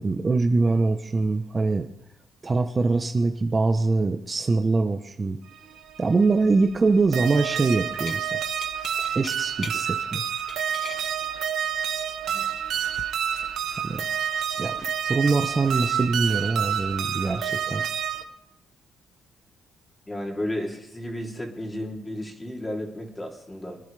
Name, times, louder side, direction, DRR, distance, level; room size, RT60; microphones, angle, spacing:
voice 1, 0.0-1.9 2.4-5.4 6.0-8.3 9.1-10.2 13.8-14.0 14.6-14.8 15.1-17.8, right 3 dB, 30° right, 5 dB, 0.9 m, -23 dB
sound 1, 5.5-18.2, right 9 dB, 75° right, 1.1 m, -29 dB
sound 2, 8.0-8.2 8.6-9.8 10.2-11.1 12.5-13.0, left 5 dB, 50° left, 0.9 m, -40 dB
voice 2, 20.1-23.8, left 1 dB, 15° left, 0 dB, 3.2 m, -33 dB
24.5 x 10.5 x 3.4 m, 0.79 s
cardioid pair, 90°, 0 cm